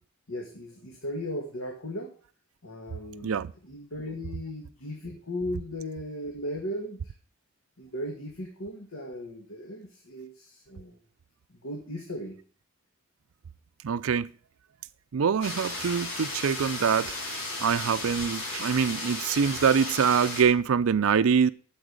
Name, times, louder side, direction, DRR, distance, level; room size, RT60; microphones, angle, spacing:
voice 1, 0.3-2.1 2.6-7.0 7.8-11.0 11.6-12.4, left 1 dB, 85° left, 2.0 m, -37 dB
voice 2, 13.8-14.3 15.1-17.1 17.6-21.5, right 6 dB, 85° right, 0.5 m, -24 dB
sound 1, 15.4-20.4, left 2 dB, 70° left, 4.6 m, -35 dB
8.8 x 7.1 x 8.1 m
head